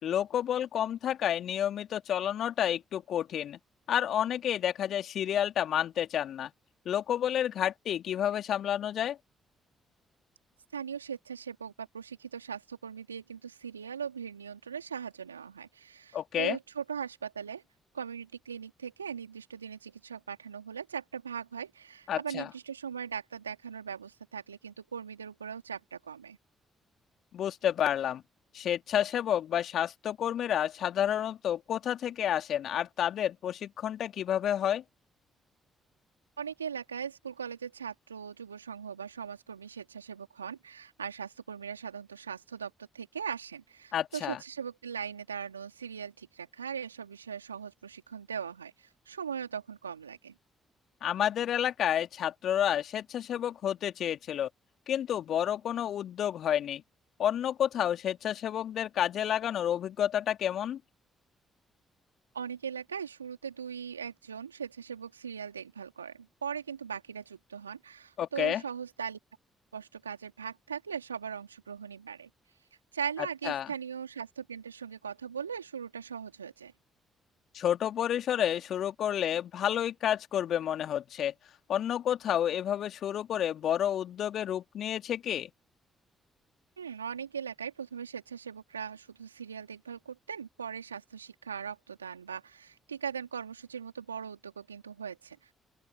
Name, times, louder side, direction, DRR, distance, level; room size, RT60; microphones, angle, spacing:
voice 1, 0.0-3.6 3.9-6.5 6.8-9.2 16.1-16.6 22.1-22.5 27.3-28.2 28.5-34.8 43.9-44.4 51.0-54.5 54.9-56.8 57.2-60.8 68.2-68.6 73.4-73.7 77.5-81.3 81.7-85.5, left 10 dB, 60° left, 3.0 m, -30 dB
voice 2, 10.7-17.6 17.9-26.4 36.4-50.3 62.3-69.2 69.7-72.3 72.9-76.7 86.8-95.4, right 7 dB, 90° right, 3.4 m, -40 dB
open air
figure-of-eight pair, 40°, 0 cm